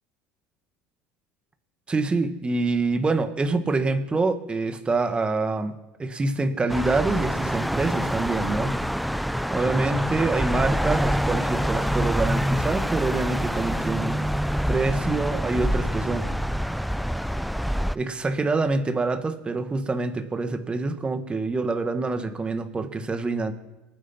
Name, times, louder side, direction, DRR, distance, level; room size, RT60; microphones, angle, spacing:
voice 1, 1.9-5.7 6.0-8.8 9.5-14.2 14.7-16.3 17.9-23.5, right 3 dB, 20° right, 8 dB, 1.6 m, -26 dB
sound 1, 6.7-18.0, equal, ahead, 0.4 m, -26 dB
25.0 x 9.4 x 4.4 m, 1.0 s
supercardioid pair, 95°, 5 cm